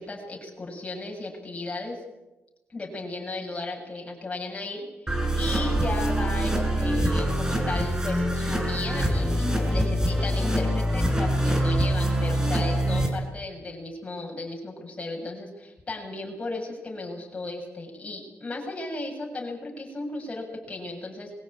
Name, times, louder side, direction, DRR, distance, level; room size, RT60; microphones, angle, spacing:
voice 1, 0.0-2.0 2.7-21.3, left 2 dB, 25° left, 0 dB, 7.4 m, -35 dB
sound 1, 5.1-13.1, equal, 15° right, 5.7 m, -24 dB
22.5 x 16.5 x 8.9 m, 1.0 s
cardioid pair, 90°, 5 cm